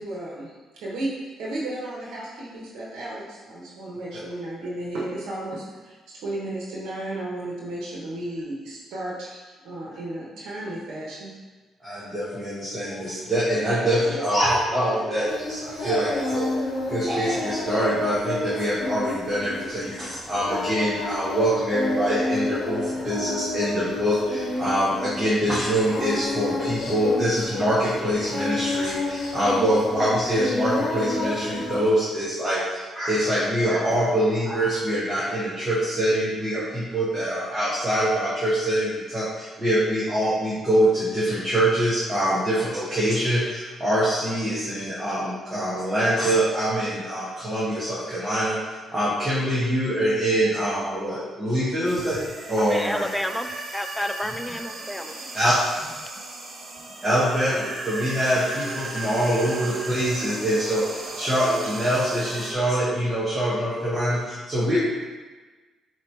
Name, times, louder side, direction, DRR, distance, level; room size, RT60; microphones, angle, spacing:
voice 1, 0.0-6.0 6.2-11.3 16.7-16.8, right 1 dB, 80° right, -5 dB, 0.9 m, -34 dB
voice 2, 11.8-16.5 16.9-53.1 55.3-55.5 57.0-64.8, equal, 20° right, -8 dB, 1.1 m, -24 dB
Singing, 15.3-31.9, left 2 dB, 65° left, 0.9 m, -30 dB
sound 1, 51.8-62.5, right 2 dB, 45° right, 0.7 m, -36 dB
voice 3, 52.5-55.1, left 1 dB, 5° left, 8 dB, 0.3 m, -30 dB
3.9 x 3.0 x 4.4 m, 1.3 s
cardioid pair, 90°, 0 cm